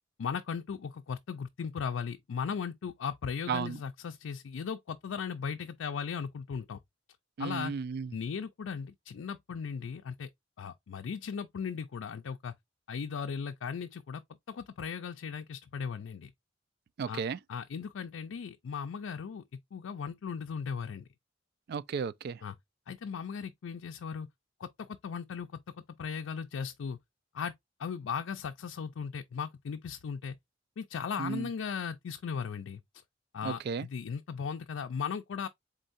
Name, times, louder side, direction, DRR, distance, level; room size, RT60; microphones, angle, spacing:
voice 1, 0.2-6.8 7.4-7.7 8.1-10.3 10.6-12.5 12.9-14.2 14.5-16.3 17.1-17.2 17.5-19.4 19.7-21.0 22.4-22.6 22.9-24.3 24.6-25.6 26.0-27.0 27.3-27.5 27.8-30.4 30.8-32.8 33.3-35.5, left 6 dB, 90° left, 0.4 m, -37 dB
voice 2, 7.4-8.1 17.0-17.4 21.7-22.4 31.2-31.5 33.4-33.9, right 5 dB, 55° right, 0.3 m, -34 dB
4.4 x 3.9 x 2.5 m
head